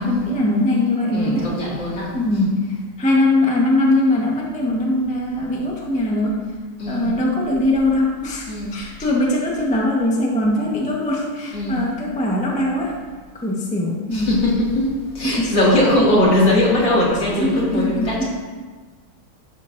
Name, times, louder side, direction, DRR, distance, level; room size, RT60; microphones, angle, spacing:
voice 1, 0.0-1.5 2.1-6.4 6.9-12.9 13.4-14.4 15.2-15.5 17.1-18.2, left 1 dB, 5° left, -2 dB, 0.7 m, -21 dB
voice 2, 1.1-2.1 6.8-7.1 8.5-8.8 11.5-11.8 14.1-18.2, left 1 dB, 60° left, -6 dB, 3.0 m, -20 dB
11.5 x 8.3 x 2.6 m, 1.4 s
omnidirectional pair, 2.3 m